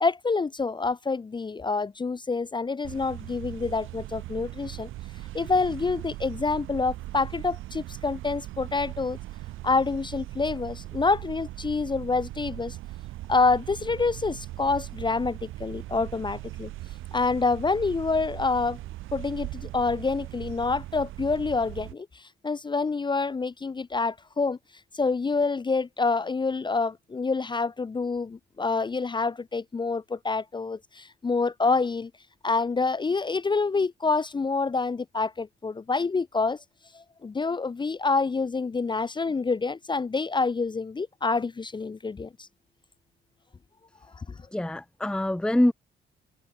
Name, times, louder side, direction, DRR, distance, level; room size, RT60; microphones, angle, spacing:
voice 1, 0.0-4.9 5.3-9.2 9.6-12.8 13.3-16.7 17.1-18.8 19.1-22.1 22.4-24.6 25.0-32.1 32.4-36.6 36.9-42.3, left 4 dB, 25° left, 0.6 m, -27 dB
sound 1, 2.8-21.9, right 16 dB, 90° right, 1.9 m, -39 dB
voice 2, 44.5-45.7, left 1 dB, 5° left, 1.0 m, -24 dB
cardioid pair, 90°, 20 cm